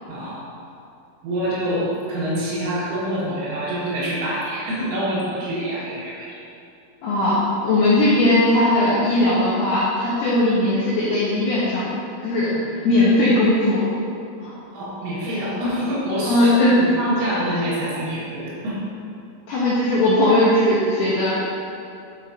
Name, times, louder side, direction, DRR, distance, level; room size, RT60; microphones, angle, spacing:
voice 1, 0.1-0.4 1.2-6.4 14.7-18.8, equal, 75° right, -7 dB, 3.9 m, -26 dB
voice 2, 7.0-11.9 12.2-12.5 12.8-13.9 14.4-14.5 16.3-16.8 19.5-21.3, left 1 dB, 85° left, -8 dB, 2.2 m, -18 dB
9.9 x 5.7 x 2.6 m, 2.6 s
omnidirectional pair, 5.8 m